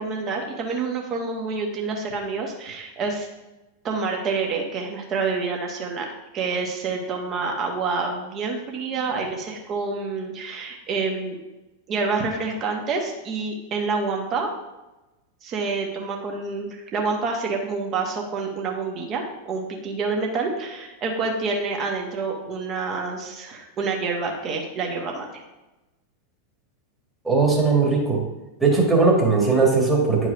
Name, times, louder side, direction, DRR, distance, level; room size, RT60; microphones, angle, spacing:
voice 1, 0.0-3.3 3.8-11.4 11.9-14.5 15.4-25.3, right 4 dB, 30° right, 1 dB, 1.4 m, -27 dB
voice 2, 27.3-28.2 28.6-30.3, right 4 dB, 10° right, -2 dB, 1.8 m, -19 dB
10.5 x 4.7 x 2.7 m, 1.0 s
figure-of-eight pair, 90°, 0 cm